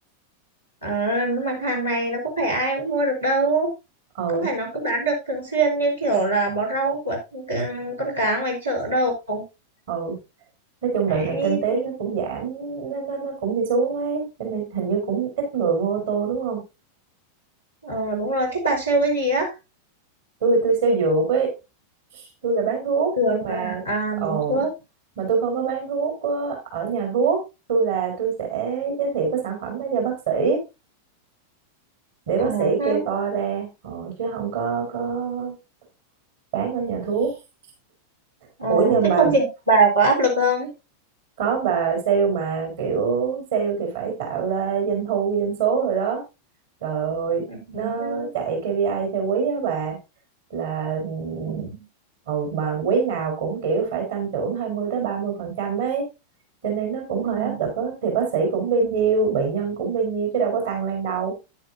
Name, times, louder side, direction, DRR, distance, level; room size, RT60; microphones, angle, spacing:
voice 1, 0.8-3.7 4.3-9.4 11.1-11.9 17.8-19.5 23.2-24.7 32.4-33.0 38.6-40.7 47.5-48.3 51.4-51.8 57.2-57.6, right 2 dB, 85° right, -3 dB, 3.8 m, -23 dB
voice 2, 4.2-4.5 9.9-10.2 10.8-16.7 20.4-21.5 22.1-23.8 24.2-24.6 25.2-27.4 27.7-30.6 32.3-35.6 36.5-37.3 38.7-39.4 41.4-46.2 46.8-47.5 47.7-50.0 50.5-51.7 52.3-56.1 56.6-61.4, right 5 dB, 55° right, 2 dB, 3.6 m, -24 dB
10.0 x 9.8 x 2.6 m, 0.26 s
figure-of-eight pair, 90°, 0 cm